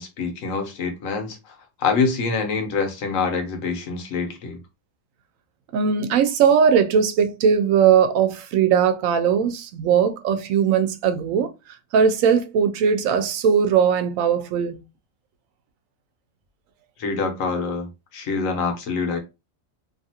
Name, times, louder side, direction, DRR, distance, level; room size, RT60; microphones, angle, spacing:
voice 1, 0.0-4.6 17.0-19.2, left 4 dB, 80° left, 1.2 m, -26 dB
voice 2, 5.7-11.5 11.9-14.8, right 7 dB, 85° right, 1.0 m, -19 dB
2.8 x 2.4 x 2.7 m
omnidirectional pair, 1.4 m